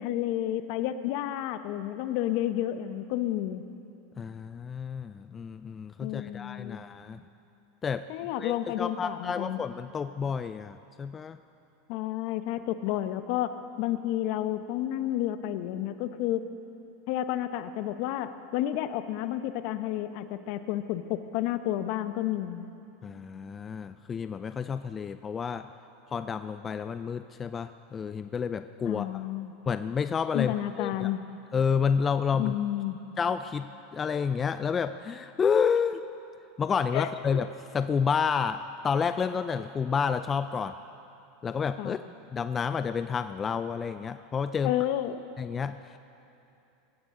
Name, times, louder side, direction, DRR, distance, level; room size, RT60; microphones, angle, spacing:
voice 1, 0.0-3.6 6.0-6.8 8.1-9.6 11.9-16.4 17.1-22.7 28.8-29.5 30.3-31.2 32.3-33.0 36.9-37.1 41.8-42.0 44.6-45.2, left 12 dB, 60° left, 10 dB, 0.8 m, -31 dB
voice 2, 4.2-7.2 7.8-8.0 8.4-11.4 23.0-25.7 26.1-29.2 29.7-31.1 31.5-32.5 33.2-33.7 33.9-36.0 36.6-37.5 37.7-40.7 41.4-42.0 42.3-44.7 45.4-45.7, left 6 dB, 25° left, 11 dB, 0.4 m, -30 dB
20.5 x 16.0 x 3.8 m, 2.7 s
hypercardioid pair, 110°, 0 cm